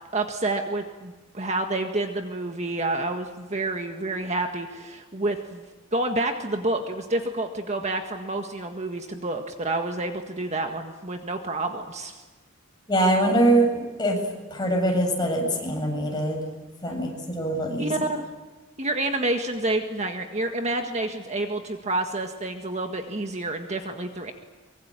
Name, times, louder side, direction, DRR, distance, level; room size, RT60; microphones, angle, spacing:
voice 1, 0.1-12.2 17.8-18.3 18.8-24.3, right 2 dB, 35° right, 4 dB, 1.7 m, -29 dB
voice 2, 12.9-13.7 14.0-14.2 14.5-16.4 16.8-17.9, right 1 dB, 20° left, 1 dB, 7.6 m, -23 dB
24.0 x 24.0 x 9.0 m, 1.2 s
head